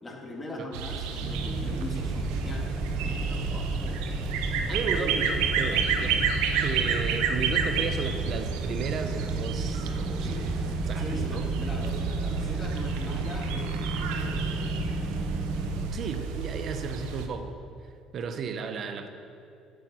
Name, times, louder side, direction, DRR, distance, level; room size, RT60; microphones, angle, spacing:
voice 1, 0.0-4.0 10.2-10.4 11.0-14.9, left 1 dB, 25° left, -1 dB, 2.8 m, -41 dB
sound 1, 0.7-17.3, right 6 dB, 85° right, 0.9 m, -31 dB
sound 2, 1.2-15.9, right 2 dB, 35° right, 1.1 m, -32 dB
voice 2, 4.7-6.3 6.6-10.3 10.9-11.5 15.9-17.6 18.1-19.1, right 5 dB, 50° right, 8 dB, 1.1 m, -34 dB
11.5 x 8.5 x 6.4 m, 2.6 s
supercardioid pair, 85°, 0 cm